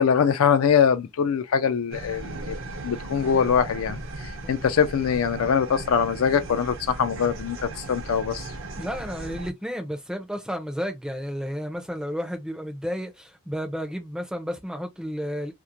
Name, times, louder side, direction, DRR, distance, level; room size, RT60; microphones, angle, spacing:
voice 1, 0.0-2.6 2.8-4.0 4.2-8.5, left 7 dB, 75° left, 0.4 m, -23 dB
sound 1, 1.9-9.5, right 2 dB, 60° right, 0.6 m, -37 dB
voice 2, 8.8-15.5, equal, 5° right, 0.4 m, -32 dB
2.4 x 2.0 x 2.8 m
head